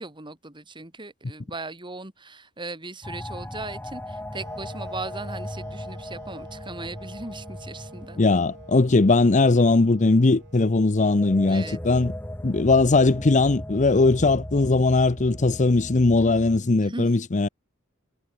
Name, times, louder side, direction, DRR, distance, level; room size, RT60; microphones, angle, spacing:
voice 1, 0.0-8.2 11.5-11.8 16.2-16.4 16.8-17.1, right 2 dB, 25° right, 2.8 m, -38 dB
sound 1, 3.0-16.6, left 1 dB, 10° left, 2.6 m, -38 dB
Wind instrument woodwind instrument, 4.3-12.3, right 2 dB, 55° right, 7.0 m, -49 dB
voice 2, 8.2-12.1 12.4-17.5, left 3 dB, 35° left, 0.7 m, -19 dB
head